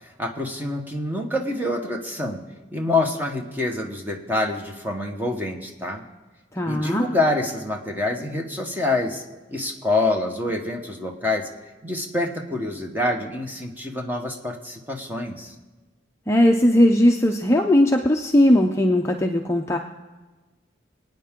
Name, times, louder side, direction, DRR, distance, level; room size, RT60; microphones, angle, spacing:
voice 1, 0.0-2.4 2.7-6.0 6.6-9.2 9.5-11.5 11.8-15.5, left 2 dB, 10° right, 2 dB, 1.2 m, -26 dB
voice 2, 6.5-7.1 16.3-19.8, left 1 dB, 15° left, 2 dB, 0.5 m, -18 dB
25.0 x 9.3 x 3.7 m, 1.2 s
head